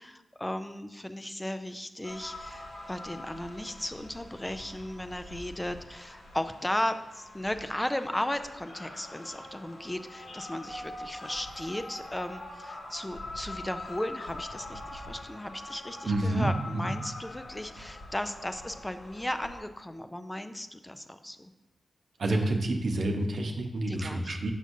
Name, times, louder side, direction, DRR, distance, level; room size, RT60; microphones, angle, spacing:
voice 1, 0.0-21.5 23.9-24.4, left 1 dB, 15° left, 9 dB, 0.5 m, -36 dB
sound 1, 2.0-19.6, left 2 dB, 75° left, 1.6 m, -44 dB
voice 2, 16.0-16.9 22.2-24.5, right 1 dB, 70° right, 2 dB, 0.8 m, -28 dB
6.5 x 6.2 x 2.7 m, 0.97 s
cardioid pair, 60°, 0 cm